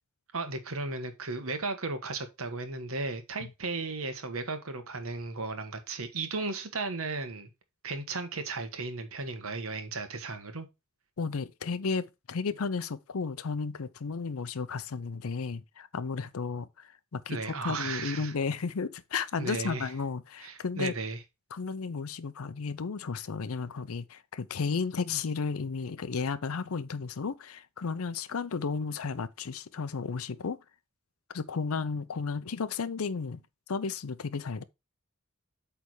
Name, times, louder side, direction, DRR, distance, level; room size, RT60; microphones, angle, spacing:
voice 1, 0.3-7.5 7.8-10.7 17.3-18.3 19.4-19.9 20.4-21.2, right 3 dB, 70° right, 1.3 m, -35 dB
voice 2, 11.2-20.9 21.5-30.6 31.3-33.4 33.7-34.6, left 5 dB, 75° left, 0.6 m, -33 dB
8.3 x 3.5 x 4.7 m
head